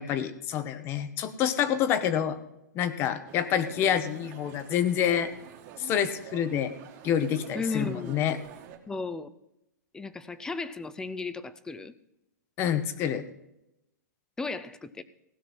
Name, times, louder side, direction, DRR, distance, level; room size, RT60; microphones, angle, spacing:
voice 1, 0.0-2.4 2.7-5.3 5.8-6.7 7.0-8.4 12.6-13.3, left 9 dB, 25° left, 13 dB, 0.9 m, -27 dB
sound 1, 3.3-8.8, right 9 dB, 35° right, 1.5 m, -46 dB
voice 2, 7.5-8.3 8.9-9.3 9.9-11.9 14.4-15.0, left 3 dB, 5° left, 15 dB, 0.5 m, -35 dB
16.0 x 5.9 x 7.4 m, 0.86 s
hypercardioid pair, 150°, 10 cm